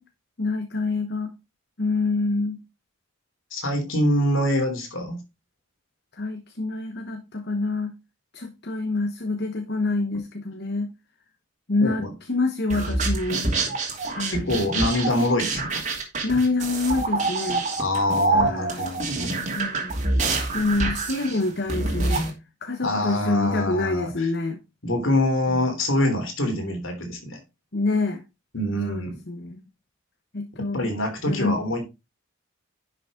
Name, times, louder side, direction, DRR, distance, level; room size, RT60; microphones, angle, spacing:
voice 1, 0.4-1.3 1.8-2.6 6.1-7.9 8.3-10.9 11.7-13.4 14.1-14.5 16.2-17.7 18.3-19.0 19.5-20.0 20.5-22.3 22.6-24.6 27.7-28.2 28.9-29.6 30.3-30.9 31.3-31.6, left 3 dB, 50° left, 1.1 m, -26 dB
voice 2, 3.5-5.2 11.8-12.1 14.3-15.8 17.8-19.3 22.8-24.3 24.8-27.4 28.5-29.2 30.7-31.8, left 1 dB, 65° left, 3.4 m, -25 dB
sound 1, 12.7-22.3, right 3 dB, 35° right, 2.8 m, -26 dB
11.0 x 6.3 x 3.7 m
head